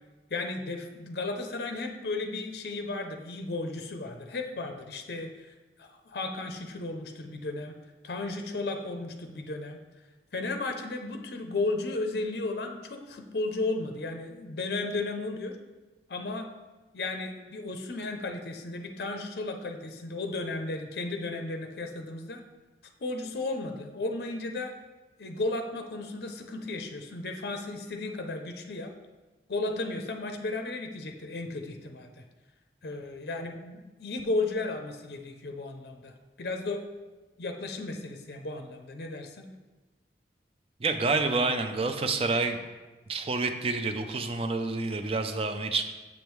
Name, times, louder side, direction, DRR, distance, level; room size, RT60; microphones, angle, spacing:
voice 1, 0.3-5.5 5.8-7.7 8.0-9.8 10.3-15.6 16.1-16.5 16.9-22.4 23.0-24.8 25.2-28.9 29.5-32.3 32.8-36.8 37.4-39.5, left 2 dB, 60° left, 5 dB, 0.6 m, -34 dB
voice 2, 40.8-42.6 43.1-45.9, right 3 dB, 35° right, 6 dB, 0.4 m, -28 dB
7.0 x 5.2 x 3.1 m, 1.2 s
head